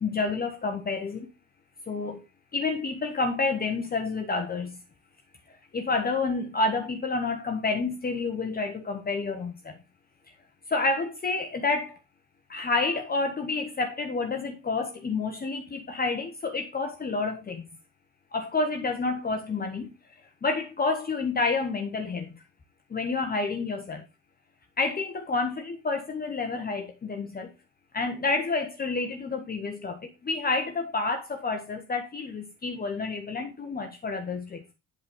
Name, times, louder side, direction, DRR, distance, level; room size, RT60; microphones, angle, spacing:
voice 1, 0.0-1.3 1.9-2.2 2.5-4.8 5.7-9.8 10.7-12.0 12.5-17.7 18.3-19.9 20.4-22.4 22.9-24.0 24.8-27.5 27.9-34.6, left 3 dB, 25° left, 1.0 m, -29 dB
8.0 x 4.2 x 4.9 m
figure-of-eight pair, 45°, 35 cm